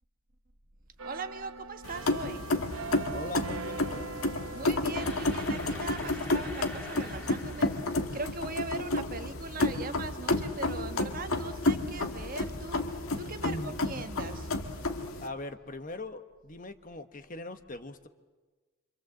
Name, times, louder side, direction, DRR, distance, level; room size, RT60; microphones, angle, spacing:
voice 1, 1.0-2.5 4.5-7.7 8.1-12.8 13.2-14.5, right 3 dB, 40° right, 8 dB, 1.2 m, -40 dB
sound 1, 1.0-12.5 13.0-13.2, right 4 dB, 70° right, 1.0 m, -45 dB
sound 2, 1.8-15.3, left 2 dB, 75° left, 1.8 m, -31 dB
voice 2, 3.1-4.1 13.4-13.8 15.2-18.1, left 2 dB, 40° left, 9 dB, 1.1 m, -40 dB
sound 3, 4.9-8.8, equal, 5° left, 2.5 m, -46 dB
26.5 x 26.5 x 7.6 m, 1.3 s
head